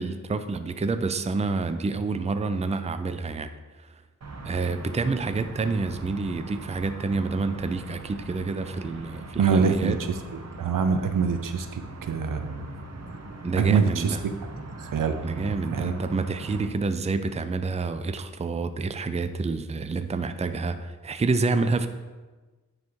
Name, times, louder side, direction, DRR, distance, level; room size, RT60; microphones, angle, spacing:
voice 1, 0.0-3.5 3.8-3.9 4.4-10.0 13.4-14.2 15.2-21.9, right 3 dB, 20° right, 10 dB, 0.4 m, -28 dB
sound 1, 4.2-16.7, right 2 dB, 55° right, 0.9 m, -41 dB
voice 2, 9.4-9.9 10.3-12.7 13.5-14.2 14.8-15.2 15.4-15.9, right 6 dB, 80° right, 8 dB, 0.6 m, -25 dB
9.4 x 3.2 x 4.6 m, 1.3 s
cardioid pair, 55°, 32 cm